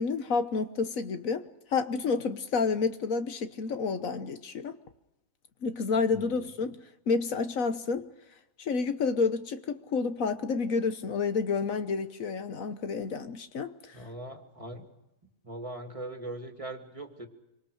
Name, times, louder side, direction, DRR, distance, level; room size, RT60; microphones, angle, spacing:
voice 1, 0.0-1.4 1.7-4.8 5.6-6.8 7.1-8.1 8.6-13.7, left 4 dB, 70° left, 1.5 m, -29 dB
voice 2, 6.1-6.8 13.9-14.9 15.4-17.3, right 1 dB, 20° right, 2.6 m, -41 dB
26.0 x 24.5 x 6.5 m
omnidirectional pair, 1.5 m